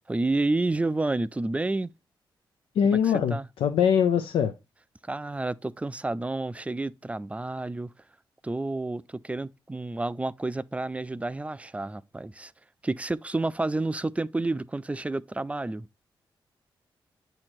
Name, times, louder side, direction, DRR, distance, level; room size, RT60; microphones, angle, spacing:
voice 1, 0.1-1.9 3.0-3.5 5.0-7.9 8.4-12.5 12.8-15.9, right 2 dB, 15° right, 0.3 m, -30 dB
voice 2, 2.8-4.5, left 8 dB, 85° left, 0.4 m, -23 dB
7.6 x 3.0 x 4.3 m
cardioid pair, 60°, 9 cm